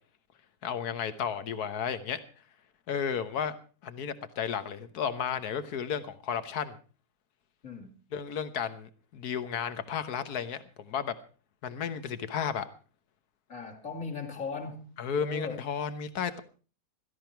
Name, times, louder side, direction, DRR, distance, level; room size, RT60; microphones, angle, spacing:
voice 1, 0.6-2.2 2.9-3.6 3.8-6.8 8.1-11.2 11.6-12.7 15.0-16.4, left 7 dB, 75° left, 12 dB, 1.6 m, -33 dB
voice 2, 13.5-14.9 15.2-15.6, left 4 dB, 55° left, 1 dB, 2.9 m, -38 dB
16.5 x 14.0 x 4.6 m, 0.37 s
omnidirectional pair, 1.7 m